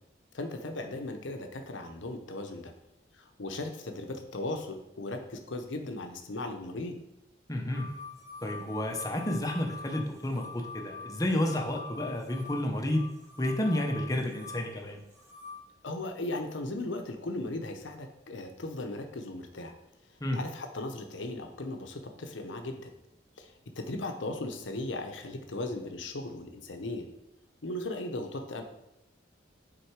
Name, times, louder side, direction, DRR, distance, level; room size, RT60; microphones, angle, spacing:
voice 1, 0.3-2.7 3.4-7.0 15.8-19.7 20.3-22.9 23.4-23.5 23.8-27.1 27.6-28.6, left 2 dB, 80° left, 5 dB, 0.8 m, -37 dB
voice 2, 7.5-7.9 8.4-13.1 13.4-15.0 20.2-20.4, left 1 dB, 20° left, 2 dB, 0.8 m, -31 dB
sound 1, 7.7-15.6, left 4 dB, 15° right, 1.3 m, -45 dB
6.5 x 3.8 x 4.7 m, 0.86 s
head